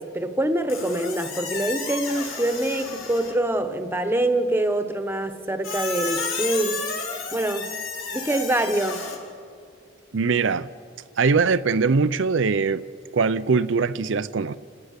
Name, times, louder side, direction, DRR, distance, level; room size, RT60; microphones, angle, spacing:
voice 1, 0.0-6.9 7.3-7.7 8.1-9.1, right 1 dB, 10° right, 8 dB, 1.1 m, -25 dB
Squeak, 0.7-3.5 5.6-9.2, left 4 dB, 85° left, 4.9 m, -32 dB
voice 2, 10.1-10.7 11.2-12.8 13.1-14.6, right 4 dB, 70° right, 13 dB, 0.5 m, -21 dB
30.0 x 18.0 x 6.7 m, 2.3 s
head